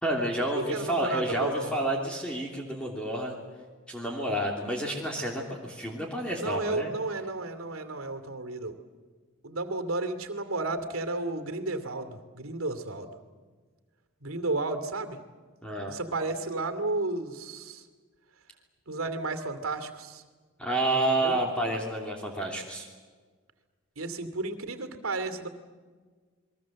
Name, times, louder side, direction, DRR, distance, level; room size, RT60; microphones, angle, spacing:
voice 1, 0.0-3.4 3.9-6.9 15.6-16.0 20.6-22.9, right 1 dB, 5° left, -1 dB, 3.0 m, -30 dB
voice 2, 0.5-1.7 6.3-8.8 9.4-13.1 14.2-15.2 15.9-17.9 18.9-20.2 21.1-21.3 24.0-25.5, right 2 dB, 80° right, 8 dB, 2.6 m, -32 dB
29.0 x 22.0 x 7.6 m, 1.5 s
head